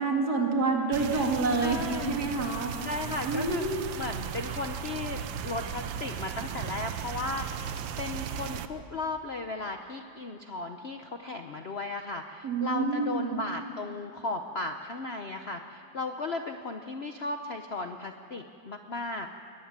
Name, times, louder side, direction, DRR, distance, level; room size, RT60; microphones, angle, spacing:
voice 1, 0.0-2.8 3.2-3.9 12.4-13.4, right 3 dB, 55° right, 1 dB, 2.9 m, -28 dB
sound 1, 0.9-8.7, right 9 dB, 85° right, 1.6 m, -36 dB
voice 2, 1.6-2.2 2.8-3.6 4.0-7.7 8.0-19.3, left 3 dB, 45° left, 5 dB, 0.8 m, -36 dB
21.5 x 20.0 x 7.4 m, 2.5 s
omnidirectional pair, 2.0 m